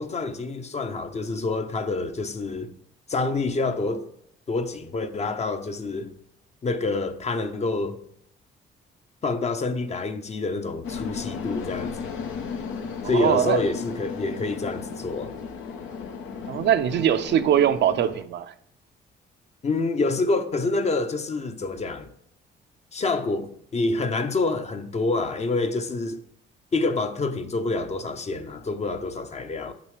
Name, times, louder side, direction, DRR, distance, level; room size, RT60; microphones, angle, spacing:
voice 1, 0.0-2.7 3.1-4.1 4.5-6.1 6.6-8.0 9.2-12.0 13.0-15.3 19.6-22.1 22.9-26.2 26.7-29.7, left 3 dB, 35° left, 0.6 m, -27 dB
sound 1, 10.8-18.2, left 5 dB, 85° left, 0.8 m, -35 dB
voice 2, 13.0-13.6 16.5-18.5, right 10 dB, 60° right, 0.5 m, -22 dB
8.5 x 6.0 x 3.2 m
cardioid pair, 90°, 20 cm